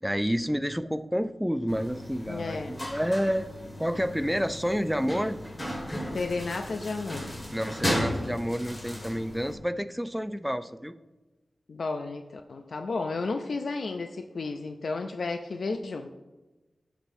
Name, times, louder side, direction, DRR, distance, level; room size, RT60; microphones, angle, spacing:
voice 1, 0.0-3.5 3.8-5.4 7.5-10.9, equal, ahead, 12 dB, 0.4 m, -29 dB
sound 1, 1.7-9.5, equal, 25° left, 1.9 m, -35 dB
voice 2, 2.3-2.8 6.1-7.3 11.7-16.1, left 3 dB, 75° left, 6 dB, 0.4 m, -32 dB
13.5 x 6.1 x 2.7 m, 1.1 s
wide cardioid pair, 75°, 0 cm